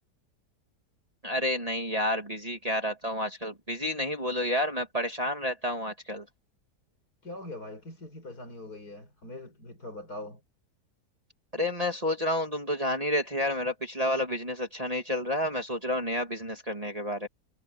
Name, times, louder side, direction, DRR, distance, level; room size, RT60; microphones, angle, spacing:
voice 1, 1.2-6.3 11.5-17.3, left 1 dB, 20° right, 2.5 m, -30 dB
voice 2, 7.2-10.4, left 1 dB, 60° left, 6.4 m, -42 dB
omnidirectional pair, 1.8 m